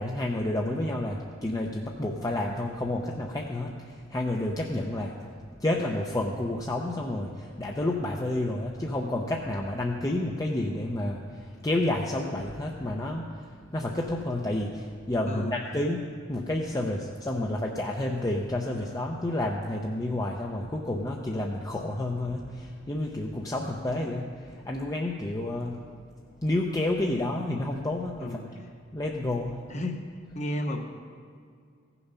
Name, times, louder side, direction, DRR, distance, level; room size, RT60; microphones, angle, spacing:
voice 1, 0.0-5.2 5.6-13.4 13.7-16.0 16.3-25.8 26.4-28.4 28.9-29.6, left 1 dB, 20° left, 0 dB, 0.6 m, -30 dB
voice 2, 15.3-15.6 28.2-28.7 29.7-30.0 30.3-30.8, left 1 dB, 35° left, 4 dB, 1.0 m, -33 dB
15.5 x 7.0 x 5.5 m, 2.2 s
head